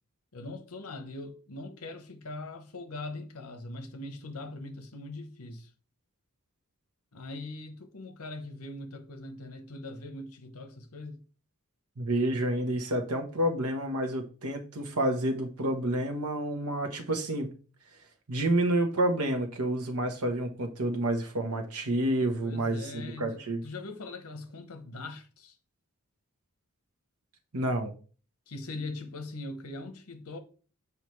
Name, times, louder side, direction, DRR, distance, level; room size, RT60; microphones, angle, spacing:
voice 1, 0.3-5.7 7.1-11.2 22.4-25.6 28.5-30.4, left 2 dB, 75° left, 1.0 m, -41 dB
voice 2, 12.0-17.5 18.3-23.6 27.5-27.9, right 1 dB, 85° right, 1.2 m, -29 dB
7.3 x 4.9 x 3.2 m
head